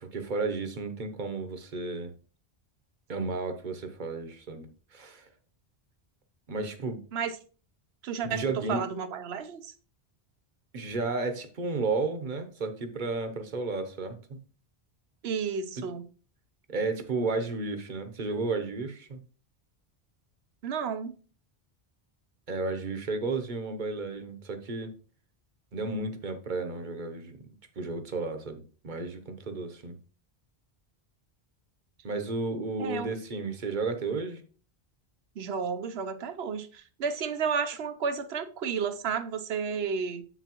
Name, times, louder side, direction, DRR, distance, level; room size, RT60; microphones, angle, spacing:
voice 1, 0.0-2.1 3.1-4.7 4.9-5.3 6.5-7.0 8.2-8.8 10.7-14.4 15.8-15.9 16.7-19.2 22.5-24.9 25.7-27.4 27.8-30.0 32.0-34.4, right 3 dB, 50° right, 1.0 m, -33 dB
voice 2, 8.0-9.7 15.2-16.0 20.6-21.2 32.8-33.1 35.4-40.2, right 6 dB, 80° right, 1.0 m, -32 dB
7.9 x 6.1 x 2.9 m
omnidirectional pair, 1.0 m